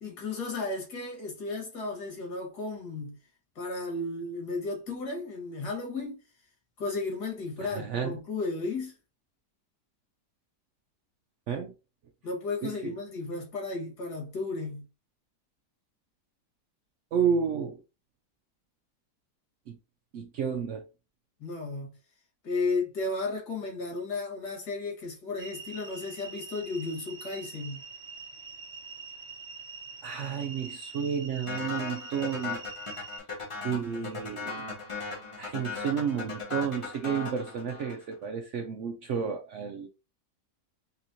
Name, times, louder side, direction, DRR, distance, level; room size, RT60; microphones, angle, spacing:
voice 1, 0.0-3.2 3.6-6.2 6.8-9.0 12.2-14.9 21.4-21.9 22.4-27.8, left 3 dB, 70° left, 1.9 m, -34 dB
voice 2, 7.6-8.2 11.5-11.7 12.6-12.9 17.1-17.8 19.7-19.8 20.1-20.9 30.0-32.6 33.6-34.6 35.4-39.9, right 7 dB, 85° right, 0.6 m, -31 dB
sound 1, 25.4-33.2, right 4 dB, 45° right, 0.6 m, -44 dB
sound 2, 31.5-38.1, left 4 dB, 35° left, 0.5 m, -37 dB
4.0 x 2.9 x 2.6 m
omnidirectional pair, 1.8 m